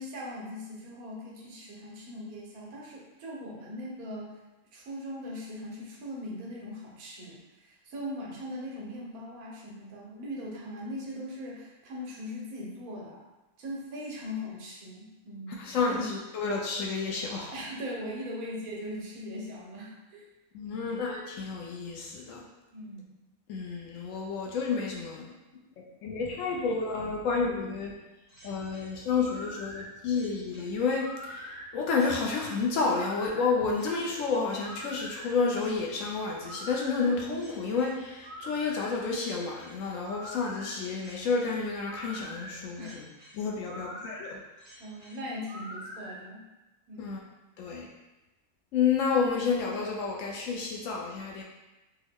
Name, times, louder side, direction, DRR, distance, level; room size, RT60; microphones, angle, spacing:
voice 1, 0.0-4.4 4.7-13.2 13.6-16.1 17.2-20.2 20.6-21.0 22.7-23.2 42.8-43.0 43.7-44.1 44.8-46.4 46.9-47.3, left 1 dB, 80° right, -3 dB, 1.2 m, -40 dB
voice 2, 15.6-17.5 20.5-22.4 23.5-25.3 26.0-27.9 28.4-43.0 43.3-44.4 47.0-47.2 47.6-47.9 48.7-51.4, left 4 dB, 70° left, -1 dB, 0.9 m, -30 dB
sound 1, 28.3-46.2, equal, 30° right, 1.2 m, -45 dB
3.4 x 2.1 x 3.4 m, 1.1 s
omnidirectional pair, 1.5 m